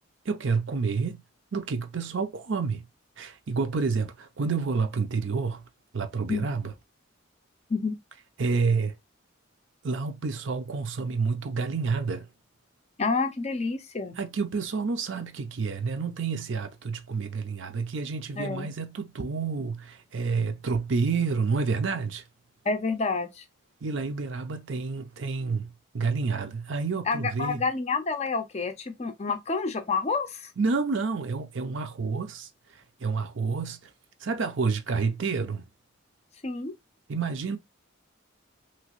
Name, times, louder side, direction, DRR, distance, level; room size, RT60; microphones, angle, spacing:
voice 1, 0.3-1.2 1.5-2.9 3.2-5.6 5.9-6.7 8.4-9.0 9.8-12.3 14.2-22.2 23.8-27.6 30.6-33.9 34.2-35.6 37.1-37.6, right 4 dB, 65° right, 0.5 m, -29 dB
voice 2, 13.0-14.2 18.4-18.7 22.7-23.4 27.1-30.5 36.4-36.7, left 4 dB, 30° left, 0.4 m, -29 dB
3.0 x 2.8 x 2.9 m
head